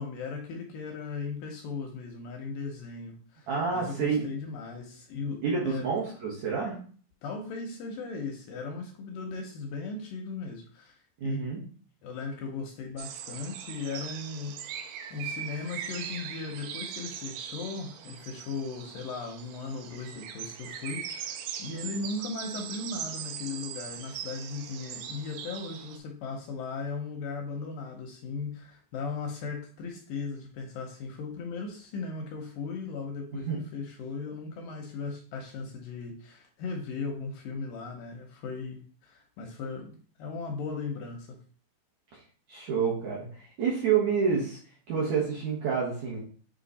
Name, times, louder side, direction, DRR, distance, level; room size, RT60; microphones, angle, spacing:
voice 1, 0.0-5.9 7.2-11.0 11.2-11.4 12.0-41.4, left 4 dB, 75° left, 2 dB, 2.0 m, -37 dB
voice 2, 3.5-4.2 5.4-6.8 11.2-11.6 33.5-33.6 42.5-44.6 44.9-46.2, right 6 dB, 60° right, -5 dB, 2.0 m, -28 dB
sound 1, 13.0-26.0, right 9 dB, 85° right, 2.2 m, -40 dB
7.6 x 3.2 x 4.1 m, 0.43 s
omnidirectional pair, 5.0 m